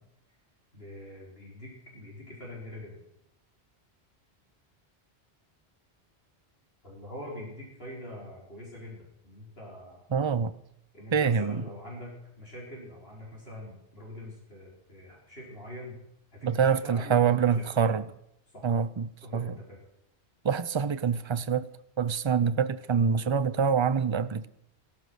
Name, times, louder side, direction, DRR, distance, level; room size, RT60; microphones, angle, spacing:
voice 1, 0.7-3.0 6.8-10.0 10.9-16.0 16.3-17.7 18.5-18.7 19.2-19.8, left 1 dB, 60° left, 5.3 m, -44 dB
voice 2, 10.1-10.5 11.1-11.6 16.4-18.1 18.6-19.6 20.4-21.7 22.0-24.5, right 6 dB, 35° right, 0.6 m, -25 dB
15.5 x 13.0 x 6.4 m
omnidirectional pair, 1.1 m